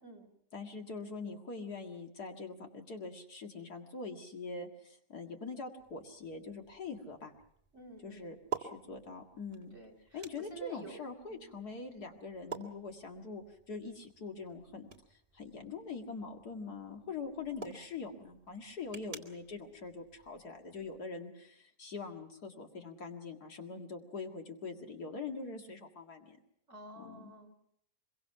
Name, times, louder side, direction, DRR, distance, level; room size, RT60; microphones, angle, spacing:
voice 1, 0.5-7.3 8.0-9.7 10.1-26.4 27.0-27.3, left 4 dB, 65° left, 3 dB, 2.6 m, -43 dB
sound 1, 5.8-21.0, right 5 dB, 30° right, 2.2 m, -50 dB
voice 2, 7.7-8.4 9.7-11.0 11.3-11.4 26.7-27.5, right 2 dB, 45° right, 6 dB, 3.7 m, -51 dB
25.0 x 23.0 x 5.8 m, 0.70 s
omnidirectional pair, 1.8 m